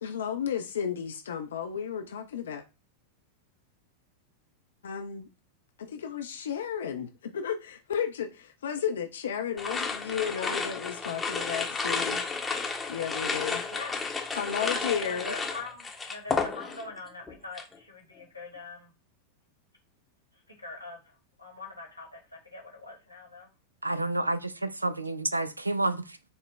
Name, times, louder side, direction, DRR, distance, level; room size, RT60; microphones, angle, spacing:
voice 1, 0.0-2.6 4.8-5.3 5.8-12.2 12.9-13.6 14.3-15.3, left 8 dB, 65° left, 0.4 m, -33 dB
sound 1, 9.6-17.0 17.3-17.7, left 4 dB, 10° left, 0.8 m, -32 dB
voice 2, 13.7-14.3 14.6-18.9 20.3-23.5, left 3 dB, 85° left, 1.3 m, -43 dB
voice 3, 23.8-26.3, right 2 dB, 85° right, 0.3 m, -30 dB
5.4 x 2.1 x 3.2 m
figure-of-eight pair, 90°, 0 cm